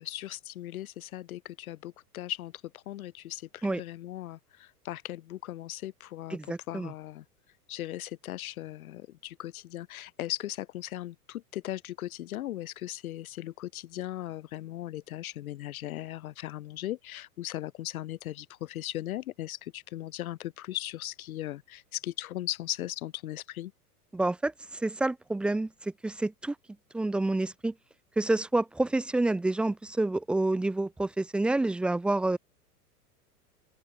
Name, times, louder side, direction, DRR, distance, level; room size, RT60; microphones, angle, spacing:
voice 1, 0.0-7.2 7.7-23.7, left 14 dB, 65° left, 5.8 m, -38 dB
voice 2, 6.3-6.9 24.1-24.5 24.8-25.7 26.0-26.5 26.9-27.7 28.2-32.4, right 2 dB, ahead, 0.4 m, -28 dB
open air
hypercardioid pair, 100°, 46 cm